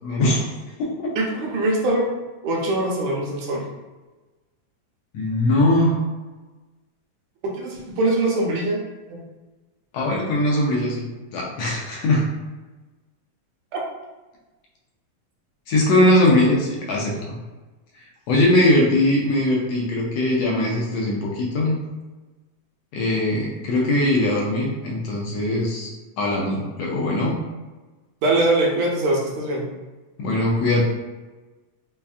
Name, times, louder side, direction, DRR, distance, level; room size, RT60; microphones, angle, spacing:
voice 1, 0.0-1.1 5.1-6.0 9.9-11.0 11.3-12.2 15.7-17.4 18.3-21.8 22.9-25.9 26.2-27.4 30.2-30.8, left 1 dB, 75° left, -3 dB, 1.6 m, -21 dB
voice 2, 1.2-2.1 2.4-3.6 7.5-8.8 9.1-9.2 15.9-16.3 28.2-29.6, right 2 dB, 75° right, -2 dB, 2.0 m, -22 dB
5.3 x 2.5 x 2.3 m, 1.2 s
omnidirectional pair, 3.3 m